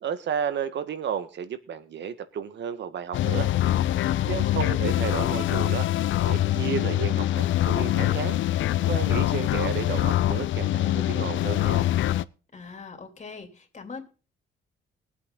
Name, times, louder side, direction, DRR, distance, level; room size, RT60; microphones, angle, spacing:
voice 1, 0.0-3.5 4.3-5.9 6.3-8.4 8.8-11.9, right 7 dB, 65° right, 11 dB, 1.6 m, -32 dB
sound 1, 3.1-12.2, left 13 dB, 75° left, 0.6 m, -24 dB
voice 2, 4.1-4.8 12.5-14.0, left 4 dB, 35° left, 4 dB, 3.1 m, -41 dB
20.0 x 8.3 x 3.9 m, 0.34 s
cardioid pair, 90°, 20 cm